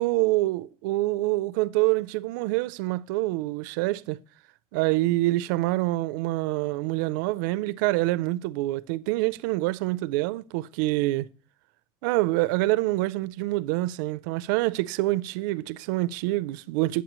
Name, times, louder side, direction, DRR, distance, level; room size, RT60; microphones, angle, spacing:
voice 1, 0.0-4.2 4.7-11.3 12.0-17.0, right 19 dB, 85° right, 0.4 m, -26 dB
9.3 x 7.9 x 3.0 m
cardioid pair, 165°, 10 cm